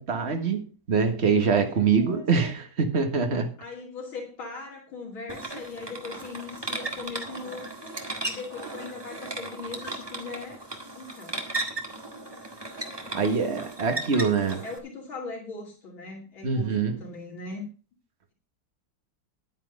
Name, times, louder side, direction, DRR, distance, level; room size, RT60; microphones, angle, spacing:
voice 1, 0.0-3.5 13.1-14.6 16.4-17.0, right 5 dB, 35° right, 1.8 m, -24 dB
voice 2, 1.5-2.5 3.6-7.9 8.2-10.6 10.9-11.4 13.0-13.4 14.1-17.7, left 4 dB, 85° left, 3.3 m, -40 dB
sound 1, 5.3-14.8, right 2 dB, 15° right, 1.6 m, -36 dB
10.5 x 9.5 x 5.0 m
omnidirectional pair, 2.1 m